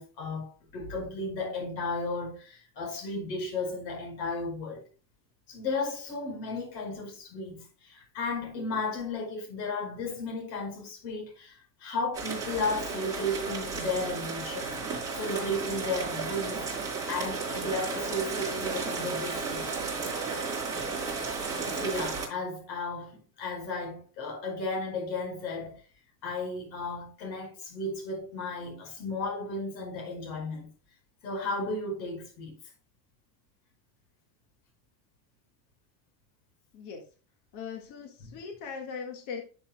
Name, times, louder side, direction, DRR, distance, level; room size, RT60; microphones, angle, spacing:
voice 1, 0.0-4.8 5.5-11.5 11.8-14.8 15.2-16.7 17.1-19.6 21.7-25.8 26.2-30.7 31.2-32.6 38.2-38.3, left 2 dB, 90° left, 5.0 m, -34 dB
sound 1, 12.1-22.3, right 4 dB, 5° right, 4.4 m, -33 dB
voice 2, 37.5-39.4, left 6 dB, 35° left, 1.7 m, -39 dB
11.5 x 7.3 x 2.2 m
supercardioid pair, 165°, 49 cm